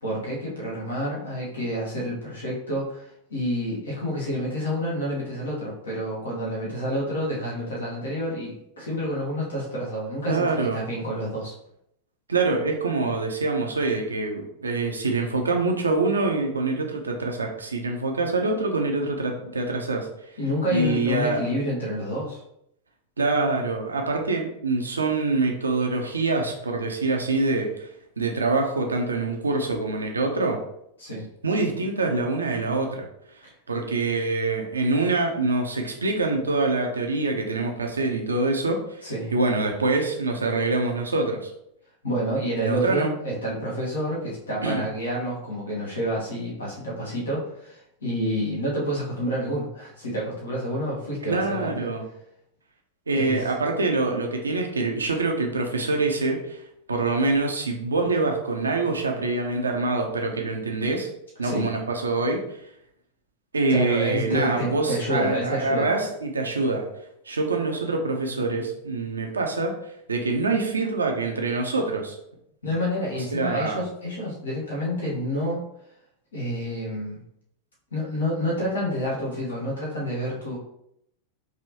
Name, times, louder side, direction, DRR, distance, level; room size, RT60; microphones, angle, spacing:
voice 1, 0.0-10.5 10.7-11.5 20.4-22.4 31.0-31.3 39.0-39.4 42.0-51.9 53.1-53.5 61.4-61.7 63.7-65.9 72.6-75.6 76.3-77.2 77.9-80.6, equal, 70° left, -5 dB, 1.5 m, -29 dB
voice 2, 10.3-10.8 12.3-20.1 20.7-21.4 23.2-27.9 28.2-30.6 31.4-33.1 33.7-39.1 39.3-41.5 42.6-43.1 44.6-44.8 51.3-52.0 53.1-56.6 56.9-61.1 61.4-62.4 63.5-66.9 67.3-69.7 70.1-72.2 73.3-73.8, right 3 dB, 75° right, 3 dB, 0.7 m, -25 dB
4.9 x 3.0 x 2.9 m, 0.75 s
figure-of-eight pair, 90°, 0 cm